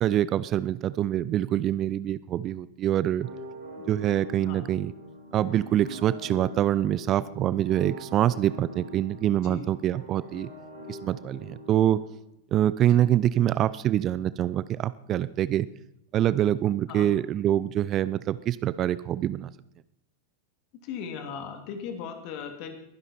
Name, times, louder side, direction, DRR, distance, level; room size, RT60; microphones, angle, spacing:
voice 1, 0.0-3.3 3.9-4.9 5.3-10.5 10.9-12.0 12.5-15.7 16.1-19.5, right 12 dB, 30° right, 17 dB, 0.5 m, -25 dB
sound 1, 3.2-12.1, left 1 dB, 85° right, 4.3 m, -43 dB
voice 2, 20.8-22.7, left 7 dB, 45° left, 6 dB, 2.6 m, -38 dB
22.0 x 10.5 x 4.4 m, 0.79 s
figure-of-eight pair, 90°, 0 cm